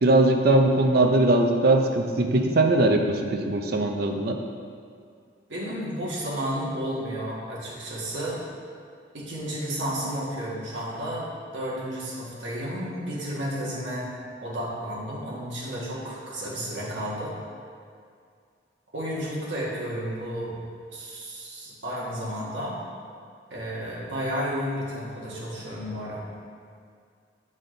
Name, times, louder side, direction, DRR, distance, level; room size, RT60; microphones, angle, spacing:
voice 1, 0.0-4.4, right 2 dB, 55° right, 4 dB, 0.6 m, -20 dB
voice 2, 5.5-8.4 9.1-11.3 11.5-14.0 14.4-17.3 18.9-20.5 20.9-22.8 23.5-26.2, equal, 85° right, -6 dB, 1.7 m, -32 dB
8.2 x 4.2 x 3.8 m, 2.2 s
head